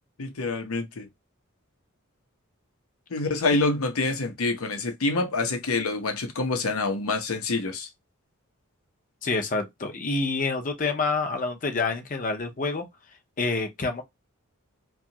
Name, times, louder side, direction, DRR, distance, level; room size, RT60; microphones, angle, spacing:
voice 1, 0.2-1.1 3.1-7.9, left 3 dB, 85° left, 0.7 m, -26 dB
voice 2, 9.2-12.9 13.4-14.0, left 3 dB, 40° left, 0.6 m, -27 dB
2.8 x 2.3 x 2.7 m
head